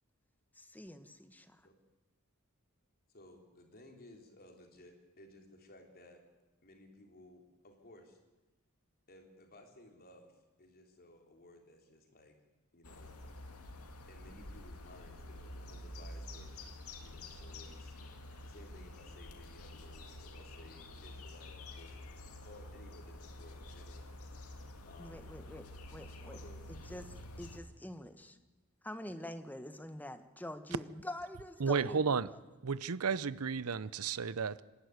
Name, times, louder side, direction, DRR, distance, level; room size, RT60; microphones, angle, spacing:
voice 1, 0.5-1.7 25.0-26.4 26.7-28.4 28.8-32.4, left 1 dB, 10° left, 1.2 m, -46 dB
voice 2, 1.4-1.7 3.1-6.2 6.6-8.2 9.1-12.3 12.7-13.2 14.0-16.6 17.0-17.9 18.5-24.1 24.8-25.3 26.2-26.6, left 1 dB, 45° left, 3.5 m, -58 dB
sound 1, 12.8-27.6, left 1 dB, 85° left, 2.3 m, -49 dB
voice 3, 31.6-32.3 32.6-34.6, right 5 dB, 85° right, 0.7 m, -33 dB
26.0 x 11.5 x 9.5 m
head